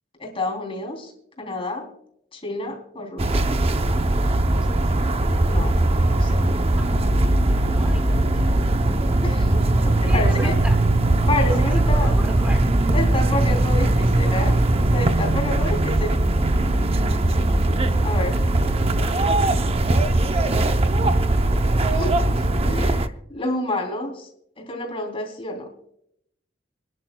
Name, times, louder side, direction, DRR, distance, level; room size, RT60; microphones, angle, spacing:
voice 1, 0.2-1.1 1.4-1.9 2.3-3.4 5.4-5.8 6.1-6.4 9.2-9.5 9.8-10.6 11.3-12.1 12.9-14.6 14.9-16.2 18.0-18.4 21.8-22.2 22.6-24.3 24.6-25.7, left 1 dB, 30° left, 2 dB, 3.2 m, -29 dB
sound 1, 3.2-23.1, right 1 dB, 30° right, 0.6 m, -20 dB
voice 2, 4.6-5.0 6.8-7.0 7.7-8.7 10.0-10.7 11.5-12.9 18.1-21.5, equal, 5° right, 5 dB, 0.9 m, -40 dB
27.0 x 10.5 x 2.2 m, 0.72 s
head